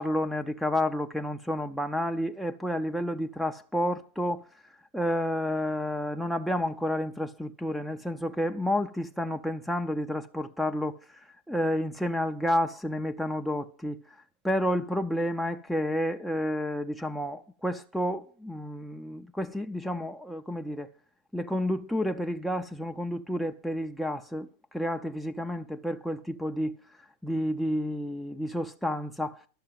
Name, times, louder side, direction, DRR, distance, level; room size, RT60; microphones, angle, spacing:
voice 1, 0.0-20.9 21.3-29.4, equal, ahead, 0.6 m, -30 dB
11.5 x 6.6 x 7.4 m
hypercardioid pair, 100°, 0 cm